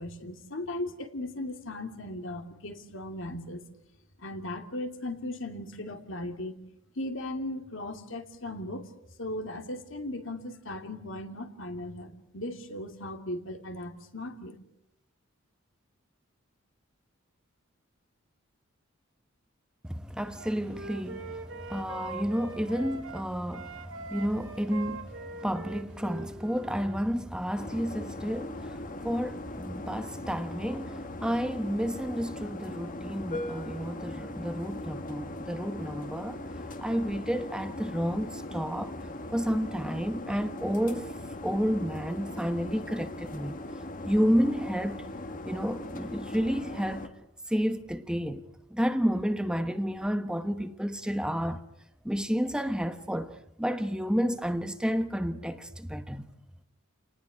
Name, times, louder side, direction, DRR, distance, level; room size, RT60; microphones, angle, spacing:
voice 1, 0.0-3.6 4.2-6.5 7.0-8.9 9.2-14.6, left 1 dB, 70° left, 2.7 m, -37 dB
voice 2, 19.8-36.4 36.8-38.9 39.3-41.1 41.4-43.5 44.1-45.0 45.4-47.1 47.5-48.4 48.7-51.6 52.0-56.3, equal, 5° right, 1.1 m, -31 dB
Wind instrument woodwind instrument, 20.3-23.2 23.5-27.0, right 3 dB, 70° right, 2.7 m, -42 dB
sound 1, 27.5-47.1, left 1 dB, 40° left, 1.9 m, -39 dB
29.5 x 19.5 x 10.0 m
head